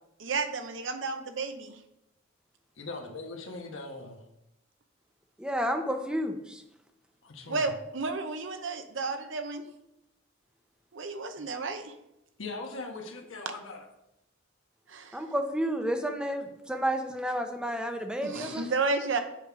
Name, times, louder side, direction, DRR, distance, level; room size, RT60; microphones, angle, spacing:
voice 1, 0.2-1.8 7.5-9.6 10.9-11.9 14.9-15.2 18.2-19.2, right 3 dB, 65° right, 7 dB, 0.8 m, -32 dB
voice 2, 2.8-4.2 7.2-7.7 12.4-13.8 18.5-18.7, left 3 dB, 80° left, 2 dB, 1.3 m, -40 dB
voice 3, 5.4-6.6 15.1-18.7, equal, 5° right, 5 dB, 0.7 m, -31 dB
8.2 x 5.5 x 4.7 m, 0.88 s
head